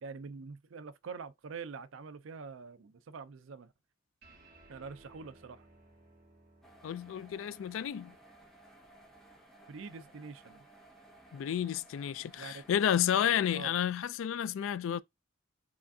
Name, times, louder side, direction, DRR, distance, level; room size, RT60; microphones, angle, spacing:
voice 1, 0.0-3.7 4.7-5.7 9.7-10.7 12.4-12.6 13.5-13.8, right 5 dB, 75° right, 0.5 m, -45 dB
sound 1, 4.2-11.0, right 2 dB, 50° right, 2.3 m, -62 dB
sound 2, 6.6-13.6, right 1 dB, ahead, 0.8 m, -58 dB
voice 2, 6.8-8.1 11.3-15.0, left 9 dB, 75° left, 0.3 m, -31 dB
4.8 x 3.3 x 2.6 m
head